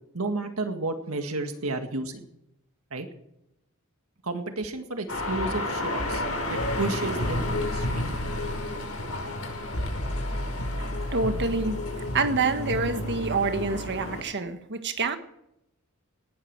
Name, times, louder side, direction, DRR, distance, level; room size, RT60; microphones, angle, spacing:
voice 1, 0.1-2.3 2.9-3.1 4.2-6.2 6.5-8.2, right 2 dB, 75° right, 6 dB, 1.9 m, -32 dB
sound 1, 5.1-14.2, left 1 dB, 80° left, 5.1 m, -30 dB
voice 2, 11.1-11.8 12.1-15.2, right 4 dB, 55° right, 8 dB, 1.6 m, -27 dB
18.0 x 13.0 x 4.7 m, 0.83 s
head